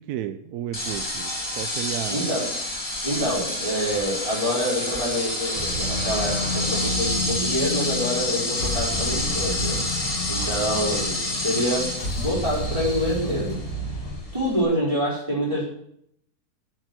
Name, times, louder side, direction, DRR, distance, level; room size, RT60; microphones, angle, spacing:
voice 1, 0.0-2.4, right 11 dB, 75° right, 10 dB, 1.1 m, -33 dB
sound 1, 0.7-14.6, left 1 dB, 20° left, 2.0 m, -29 dB
voice 2, 2.1-2.5 3.0-9.8 10.3-13.6 14.3-15.6, equal, 20° right, -9 dB, 4.5 m, -26 dB
sound 2, 5.5-14.2, left 1 dB, 75° left, 2.5 m, -31 dB
9.3 x 7.6 x 7.6 m, 0.70 s
omnidirectional pair, 1.7 m